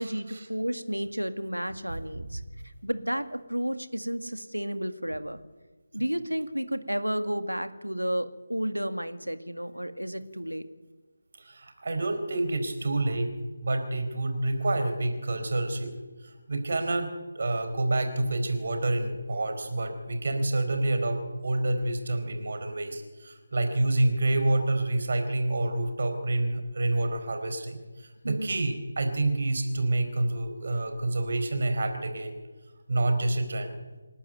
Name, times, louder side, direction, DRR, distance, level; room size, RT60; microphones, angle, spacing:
voice 1, 0.0-2.4 2.8-5.4 5.9-10.6 28.2-28.6, equal, 85° right, 10 dB, 1.9 m, -32 dB
voice 2, 11.4-13.3 13.6-16.0 16.2-17.1 17.3-32.4 32.9-33.7, right 2 dB, 45° right, 6 dB, 4.4 m, -28 dB
27.5 x 11.5 x 9.2 m, 1.3 s
figure-of-eight pair, 155°, 0 cm